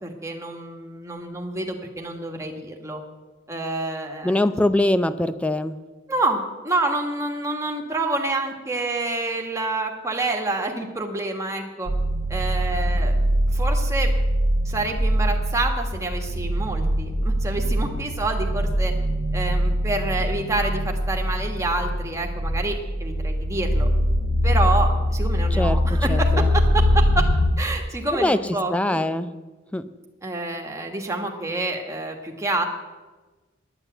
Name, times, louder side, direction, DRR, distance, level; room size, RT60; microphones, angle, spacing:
voice 1, 0.0-3.0 3.5-4.3 6.1-11.9 12.3-13.1 13.5-14.1 14.6-18.9 19.3-23.9 24.4-27.3 27.6-29.0 30.2-32.6, right 2 dB, 15° right, 2 dB, 1.5 m, -28 dB
voice 2, 4.2-5.8 25.5-26.5 28.1-28.4 28.7-29.3 29.7-29.8, left 1 dB, 5° left, 12 dB, 0.4 m, -23 dB
sound 1, 11.9-27.5, equal, 80° left, 2.4 m, -22 dB
10.0 x 9.9 x 7.9 m, 1.2 s
head